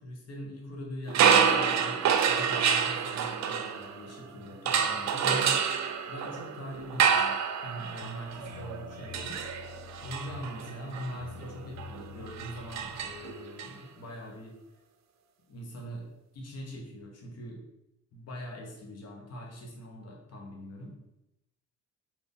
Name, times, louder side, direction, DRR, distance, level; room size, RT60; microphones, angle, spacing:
voice 1, 0.0-9.4 10.0-14.5 15.5-16.1 16.3-17.6 18.1-21.0, equal, 55° left, 0 dB, 1.2 m, -42 dB
sound 1, 1.1-4.2 4.6-13.7, right 7 dB, 65° right, 0.5 m, -28 dB
sound 2, 8.0-13.3, left 4 dB, 85° left, 0.7 m, -47 dB
4.1 x 2.9 x 3.5 m, 0.89 s
cardioid pair, 90°, 30 cm